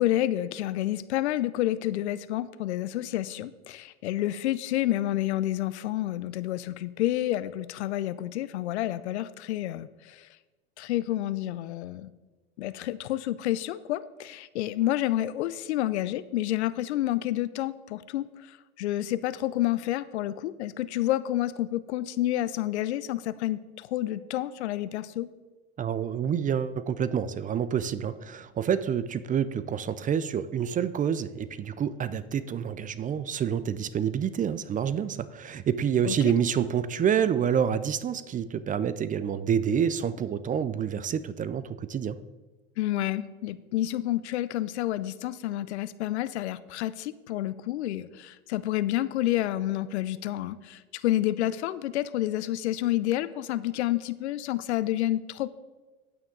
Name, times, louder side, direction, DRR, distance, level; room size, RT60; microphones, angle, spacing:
voice 1, 0.0-10.3 10.8-12.1 12.6-25.3 36.0-36.2 42.8-55.5, left 14 dB, 85° left, 16 dB, 0.5 m, -29 dB
voice 2, 25.8-42.2, right 8 dB, 25° right, 15 dB, 0.4 m, -28 dB
9.0 x 9.0 x 3.8 m, 1.2 s
hypercardioid pair, 90°, 33 cm